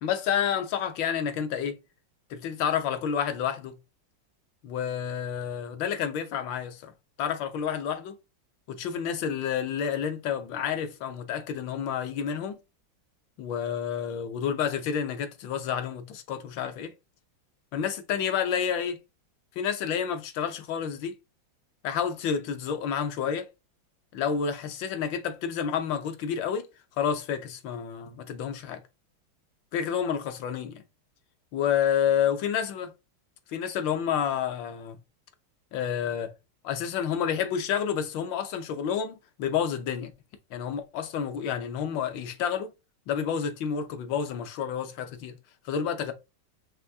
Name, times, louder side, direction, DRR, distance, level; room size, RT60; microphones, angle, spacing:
voice 1, 0.0-1.8 2.3-3.8 4.6-6.9 7.2-8.2 8.7-12.6 13.4-16.9 17.7-19.0 19.6-21.1 21.8-23.5 24.1-26.7 27.0-28.8 29.7-30.8 31.5-32.9 33.5-35.0 35.7-36.3 36.6-40.1 40.5-42.7 43.1-45.4 45.6-46.1, left 8 dB, 70° left, 1.4 m, -29 dB
5.9 x 2.6 x 2.7 m
omnidirectional pair, 2.2 m